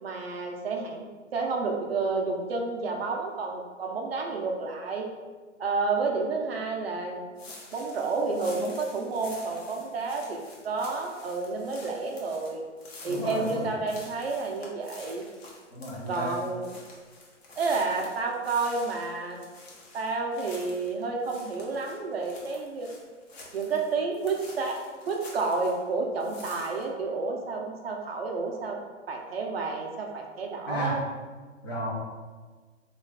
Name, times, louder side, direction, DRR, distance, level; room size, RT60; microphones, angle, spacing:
voice 1, 0.0-5.1 5.6-7.3 7.7-10.4 10.6-12.6 13.0-15.2 16.1-16.8 17.6-19.4 19.9-22.9 23.5-24.8 25.1-28.8 29.1-31.0, right 3 dB, 50° right, 1 dB, 0.5 m, -30 dB
sound 1, 7.4-25.9 26.2-26.8, left 2 dB, 55° left, 0.9 m, -49 dB
voice 2, 13.0-13.6 15.7-16.4 30.7-31.0 31.6-31.9, equal, 20° left, -7 dB, 0.5 m, -33 dB
3.1 x 2.4 x 3.3 m, 1.4 s
figure-of-eight pair, 130°, 38 cm